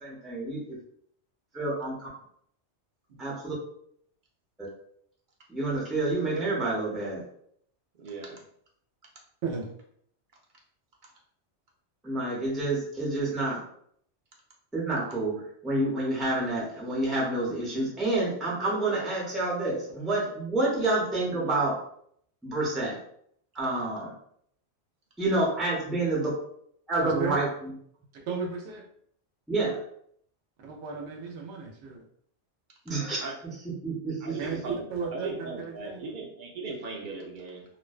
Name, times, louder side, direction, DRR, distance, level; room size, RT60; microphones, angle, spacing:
voice 1, 0.0-0.8 1.5-2.1 3.2-3.5 5.5-7.2 12.0-13.6 14.7-21.8 22.4-23.0 23.5-24.1 25.2-26.4 26.9-27.5 29.5-29.8 32.9-33.2 33.8-34.4, right 2 dB, ahead, -5 dB, 0.5 m, -28 dB
voice 2, 8.0-8.4 33.2-33.3 34.2-37.6, right 3 dB, 55° right, -2 dB, 0.6 m, -38 dB
voice 3, 27.0-27.4 28.1-28.8 30.6-32.0 34.4-36.1, right 5 dB, 80° right, 0 dB, 0.9 m, -35 dB
2.5 x 2.1 x 2.3 m, 0.66 s
omnidirectional pair, 1.2 m